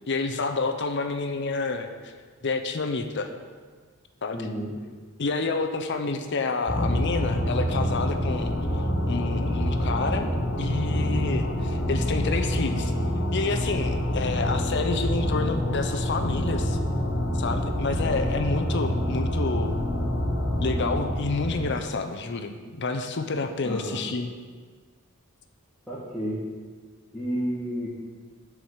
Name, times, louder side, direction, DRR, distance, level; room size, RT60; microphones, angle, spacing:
voice 1, 0.1-2.1 2.4-3.3 4.2-4.5 5.2-8.5 9.1-10.3 10.6-12.9 13.3-16.8 17.3-19.8 20.6-24.3, left 3 dB, 55° left, 7 dB, 0.7 m, -29 dB
voice 2, 4.3-4.7 23.6-24.0 25.9-26.4 27.1-27.9, equal, ahead, -13 dB, 1.9 m, -31 dB
sound 1, 6.7-21.8, left 1 dB, 85° left, 1.6 m, -26 dB
7.4 x 4.8 x 7.1 m, 1.5 s
head